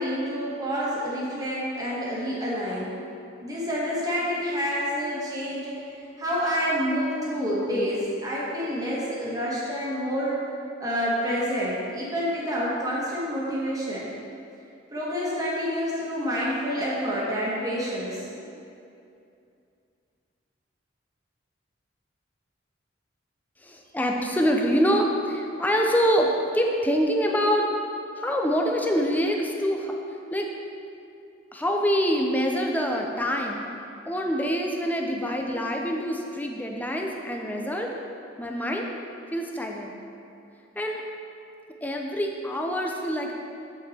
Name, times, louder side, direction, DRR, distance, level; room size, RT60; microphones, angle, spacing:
voice 1, 0.0-2.9 3.4-5.8 6.2-10.3 10.8-14.1 14.9-18.4, equal, 20° right, -7 dB, 1.5 m, -28 dB
voice 2, 23.6-27.7 28.2-30.0 30.3-30.5 31.5-33.7 34.1-37.9 38.4-38.9 39.3-39.9 40.8-41.0 41.8-43.3, equal, 10° left, 1 dB, 0.6 m, -25 dB
7.2 x 7.1 x 4.3 m, 2.6 s
head